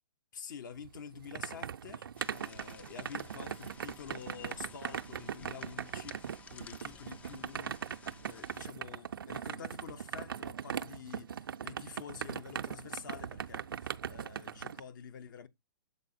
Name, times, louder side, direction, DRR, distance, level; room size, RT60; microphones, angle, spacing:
voice 1, 0.3-15.5, left 7 dB, 55° left, 0.9 m, -48 dB
sound 1, 0.8-14.8, right 8 dB, 70° right, 0.5 m, -40 dB
sound 2, 2.2-8.7, left 5 dB, 10° left, 0.4 m, -55 dB
7.0 x 4.2 x 4.1 m
figure-of-eight pair, 120°, 12 cm